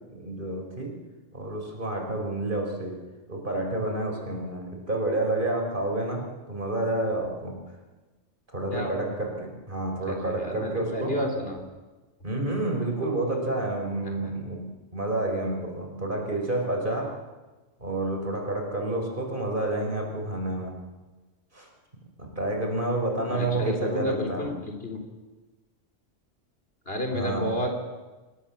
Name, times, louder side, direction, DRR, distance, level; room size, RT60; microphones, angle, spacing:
voice 1, 0.1-0.9 1.3-3.0 3.3-7.6 8.5-11.2 12.2-14.6 14.9-17.1 17.8-20.8 21.5-21.7 22.2-24.5 27.1-27.5, right 2 dB, 45° right, 2 dB, 4.9 m, -29 dB
voice 2, 10.2-11.6 14.0-14.3 23.3-25.0 26.9-27.7, equal, 55° left, 3 dB, 4.3 m, -31 dB
26.5 x 20.0 x 7.4 m, 1.2 s
omnidirectional pair, 1.2 m